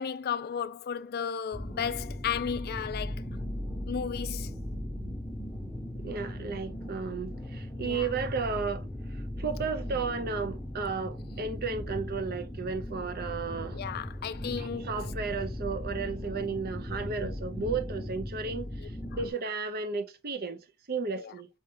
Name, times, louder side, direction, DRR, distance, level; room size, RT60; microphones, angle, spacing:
voice 1, 0.0-3.2 3.9-4.6 7.8-8.1 13.7-15.0 18.8-18.9 21.2-21.3, left 7 dB, 45° left, 0.4 m, -34 dB
sound 1, 1.5-19.3, left 1 dB, ahead, 1.0 m, -38 dB
voice 2, 6.0-13.8 14.6-21.5, right 4 dB, 45° right, 0.6 m, -34 dB
5.1 x 2.8 x 3.7 m
head